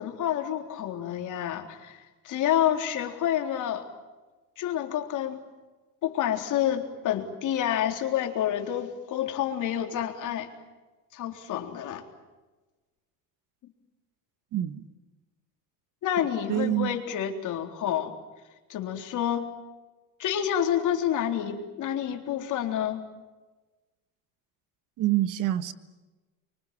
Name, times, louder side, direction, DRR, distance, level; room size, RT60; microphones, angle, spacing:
voice 1, 0.0-3.9 4.6-5.4 6.0-10.5 11.1-12.0 16.0-18.1 18.7-19.5 20.2-23.0, left 10 dB, 55° left, 4 dB, 3.9 m, -28 dB
voice 2, 14.5-14.9 16.5-17.0 25.0-25.7, right 14 dB, 55° right, 12 dB, 1.6 m, -26 dB
29.5 x 24.5 x 7.7 m, 1.2 s
cardioid pair, 125°, 36 cm